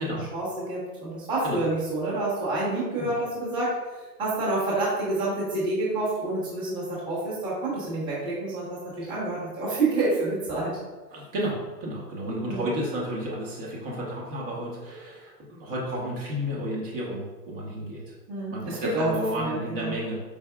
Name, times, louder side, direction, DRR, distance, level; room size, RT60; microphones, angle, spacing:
voice 1, 0.0-3.7 4.0-10.7 12.5-12.7 18.3-19.9, right 2 dB, 10° right, -8 dB, 1.1 m, -28 dB
voice 2, 11.1-18.1 18.5-20.2, equal, 35° right, -4 dB, 1.1 m, -32 dB
4.7 x 4.5 x 2.3 m, 1.3 s
hypercardioid pair, 140°, 50 cm